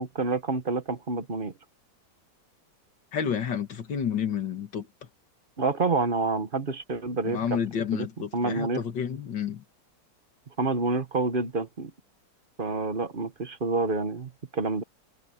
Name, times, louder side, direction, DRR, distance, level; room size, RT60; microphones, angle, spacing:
voice 1, 0.0-1.5 5.6-7.4 7.9-8.1 8.3-8.8 10.6-11.9 12.6-14.8, right 3 dB, 35° right, 1.2 m, -28 dB
voice 2, 3.1-4.9 7.2-9.6, left 7 dB, 80° left, 2.4 m, -30 dB
omnidirectional pair, 1.9 m